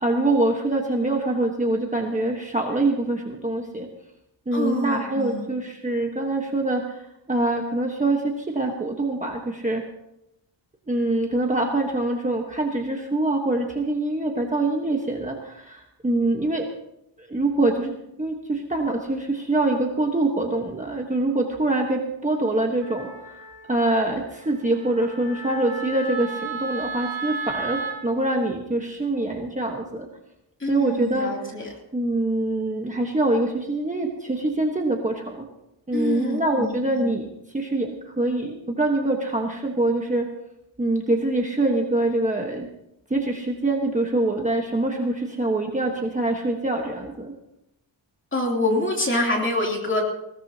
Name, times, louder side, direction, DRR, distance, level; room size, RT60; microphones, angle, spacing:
voice 1, 0.0-3.9 4.5-9.8 10.9-16.7 17.2-23.4 23.7-30.1 30.7-31.3 31.9-35.5 35.9-40.3 40.8-42.7 43.1-47.3, right 2 dB, 15° right, 1 dB, 1.2 m, -24 dB
voice 2, 4.5-5.5 30.6-31.7 35.9-37.1 48.3-50.0, left 2 dB, 25° left, -1 dB, 3.0 m, -26 dB
Wind instrument woodwind instrument, 22.8-28.0, right 4 dB, 85° right, 5.6 m, -34 dB
20.5 x 16.5 x 2.8 m, 0.84 s
wide cardioid pair, 155°, 47 cm